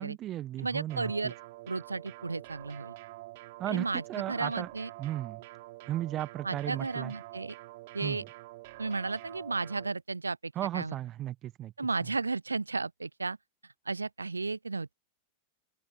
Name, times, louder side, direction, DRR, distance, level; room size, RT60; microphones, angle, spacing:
voice 1, 0.0-1.3 3.6-4.7 5.0-5.4 5.9-7.1 8.0-8.2 10.5-11.7 12.0-12.1, right 13 dB, 35° right, 1.3 m, -35 dB
voice 2, 0.6-1.3 1.7-2.9 3.7-4.0 4.3-4.9 6.4-7.5 7.9-8.2 8.8-10.9 11.8-13.4 13.9-14.9, right 3 dB, 80° right, 0.5 m, -33 dB
sound 1, 0.9-9.9, right 20 dB, 50° right, 4.4 m, -47 dB
figure-of-eight pair, 90°, 0 cm